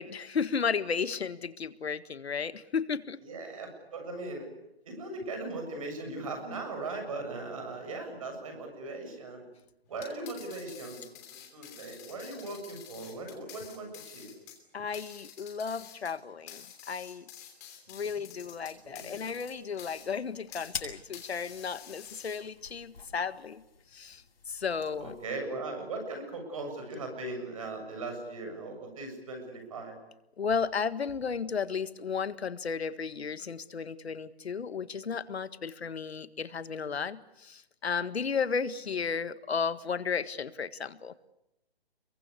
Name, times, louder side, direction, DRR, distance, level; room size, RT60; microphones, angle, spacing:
voice 1, 0.0-3.2 14.7-17.2 17.9-23.6 23.9-24.2 24.5-25.2 30.4-41.1, left 6 dB, 85° left, 13 dB, 1.7 m, -34 dB
voice 2, 3.2-4.5 4.8-9.5 9.9-11.0 11.3-14.3 17.9-18.2 18.8-19.2 25.0-30.0, right 2 dB, 35° right, 4 dB, 7.3 m, -39 dB
sound 1, 9.9-20.8 21.1-22.7, left 9 dB, 15° left, 2.9 m, -49 dB
sound 2, 18.4-25.2, left 5 dB, 65° left, 7.7 m, -47 dB
26.5 x 23.0 x 8.3 m, 0.86 s
hypercardioid pair, 180°, 31 cm